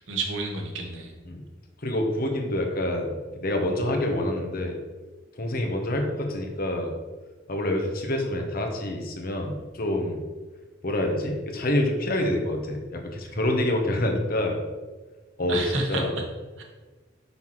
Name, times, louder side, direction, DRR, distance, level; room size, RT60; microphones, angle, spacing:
voice 1, 0.0-1.2 15.5-16.2 16.6-16.7, right 2 dB, 80° right, 2 dB, 1.3 m, -30 dB
voice 2, 1.8-4.8 5.4-6.9 7.5-10.2 10.8-14.6 15.4-15.6 15.9-16.1, left 1 dB, 50° left, 3 dB, 1.1 m, -27 dB
5.8 x 5.6 x 4.6 m, 1.3 s
head